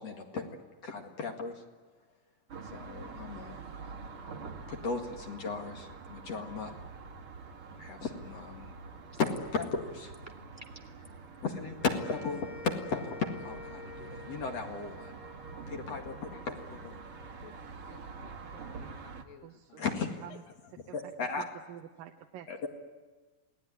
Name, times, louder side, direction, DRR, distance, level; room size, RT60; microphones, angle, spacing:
voice 1, 0.0-1.6 2.7-4.2 4.7-6.7 7.7-8.7 9.2-10.1 11.4-15.1 15.7-16.9 19.8-20.1 20.9-21.4 22.5-22.7, left 4 dB, 50° left, 3 dB, 2.9 m, -36 dB
sound 1, 2.5-19.2, right 4 dB, 45° right, 2.4 m, -46 dB
sound 2, 9.1-9.8 10.1-11.1, right 1 dB, 10° right, 0.8 m, -52 dB
sound 3, 11.8-18.2, left 3 dB, 25° left, 3.0 m, -49 dB
voice 2, 15.9-16.4 17.4-17.6 17.9-19.8, left 9 dB, 75° left, 8 dB, 3.1 m, -56 dB
voice 3, 19.4-20.4 20.9-21.0 21.4-22.5, right 11 dB, 75° right, 4 dB, 2.6 m, -48 dB
28.5 x 19.0 x 9.8 m, 1.3 s
omnidirectional pair, 4.1 m